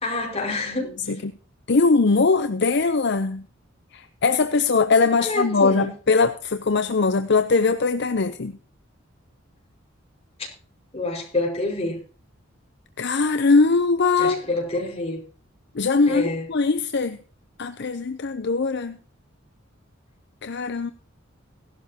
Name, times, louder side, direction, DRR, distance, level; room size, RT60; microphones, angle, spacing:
voice 1, 0.0-1.2 5.2-5.9 10.9-12.0 14.2-15.2 16.1-16.5, left 2 dB, 30° left, 5.2 m, -27 dB
voice 2, 1.7-3.5 3.9-8.6 13.0-14.4 15.7-17.2 17.6-19.0 20.4-20.9, left 4 dB, 60° left, 0.7 m, -21 dB
17.0 x 12.0 x 2.9 m
head